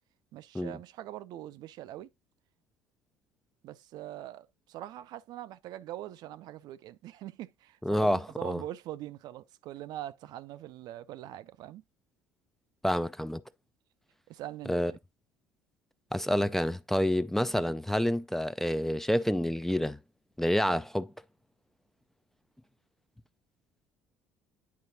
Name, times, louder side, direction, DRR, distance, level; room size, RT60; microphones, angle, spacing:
voice 1, 0.3-2.1 3.6-11.8 14.3-15.0, right 13 dB, 55° right, 0.4 m, -43 dB
voice 2, 7.8-8.6 12.8-13.4 14.7-14.9 16.1-20.0 20.4-21.1, equal, 5° left, 0.4 m, -28 dB
9.3 x 4.6 x 2.7 m
hypercardioid pair, 60°, 8 cm